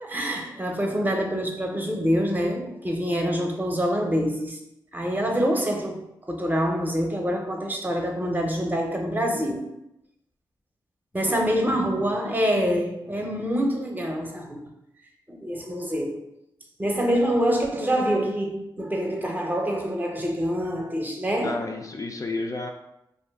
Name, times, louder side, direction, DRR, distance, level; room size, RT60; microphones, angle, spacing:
voice 1, 0.0-4.6 4.9-9.7 11.1-14.7 15.3-16.2 16.8-21.6, equal, 20° right, 1 dB, 0.7 m, -26 dB
voice 2, 11.2-11.7 11.9-12.1 21.4-22.7, left 2 dB, 35° left, 2 dB, 0.3 m, -32 dB
2.5 x 2.3 x 3.4 m, 0.83 s
cardioid pair, 50°, 9 cm